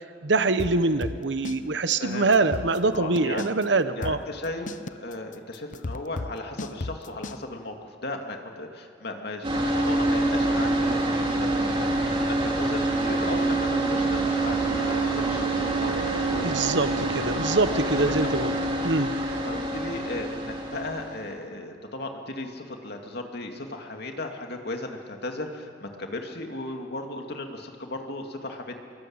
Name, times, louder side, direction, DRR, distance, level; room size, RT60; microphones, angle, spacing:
voice 1, 0.2-4.2 16.4-18.5 18.8-19.1, right 3 dB, 70° right, 11 dB, 1.0 m, -24 dB
Spiffy Spank, 0.6-1.6 1.9-2.0 2.3-3.6 4.0-7.4, left 2 dB, 45° left, 0.9 m, -34 dB
voice 2, 2.0-2.3 2.9-3.5 3.9-15.9 16.3-16.8 18.0-18.4 18.8-18.9 19.4-28.8, left 2 dB, 60° left, 3 dB, 2.5 m, -36 dB
sound 1, 9.4-21.3, right 2 dB, 30° right, 3.0 m, -26 dB
26.5 x 23.0 x 8.9 m, 2.4 s
head